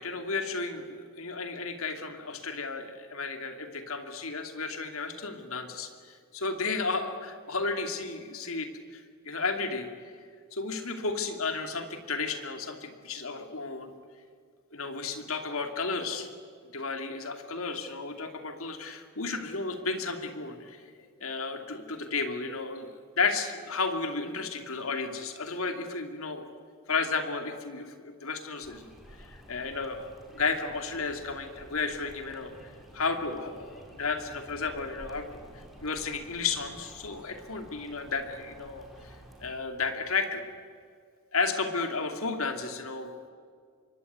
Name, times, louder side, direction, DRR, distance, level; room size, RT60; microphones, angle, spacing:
voice 1, 0.0-9.9 10.5-13.9 14.7-16.3 16.6-20.8 21.2-22.9 23.1-26.5 26.9-28.9 29.2-35.3 35.8-40.4 41.3-43.3, left 4 dB, 65° left, 6 dB, 2.8 m, -33 dB
sound 1, 28.6-39.5, equal, ahead, 5.1 m, -51 dB
26.5 x 23.5 x 9.5 m, 2.1 s
head